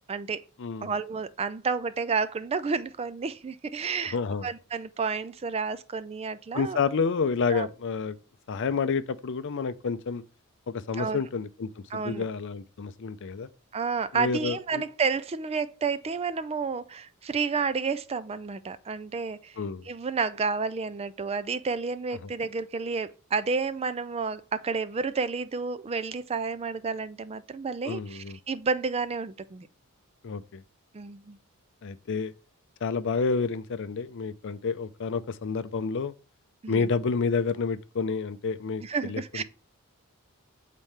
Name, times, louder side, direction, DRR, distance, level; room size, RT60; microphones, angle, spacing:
voice 1, 0.1-0.4 0.8-4.2 4.4-6.8 7.5-7.7 11.0-11.2 11.9-12.3 13.7-19.6 19.8-29.7 30.9-31.4 36.6-36.9 38.8-39.4, right 5 dB, 30° right, 0.4 m, -30 dB
voice 2, 0.6-0.9 4.1-4.5 6.5-8.2 8.5-10.2 10.7-13.5 14.1-14.8 19.6-19.9 22.2-22.3 27.8-28.4 30.2-30.6 31.8-32.3 32.8-36.1 36.7-39.4, left 5 dB, 55° left, 0.5 m, -29 dB
7.3 x 4.1 x 3.3 m
head